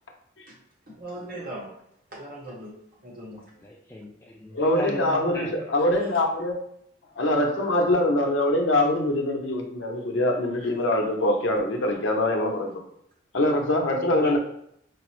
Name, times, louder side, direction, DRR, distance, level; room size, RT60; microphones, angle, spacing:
voice 1, 0.9-1.7 2.1-2.7 3.0-3.4 10.6-10.7, right 1 dB, 45° right, -3 dB, 1.1 m, -39 dB
voice 2, 3.6-5.5 14.0-14.4, left 1 dB, 15° left, -2 dB, 0.3 m, -37 dB
voice 3, 4.5-6.5 7.2-12.8 13.3-14.4, left 1 dB, 80° left, 2 dB, 0.6 m, -23 dB
4.8 x 2.0 x 3.0 m, 0.72 s
head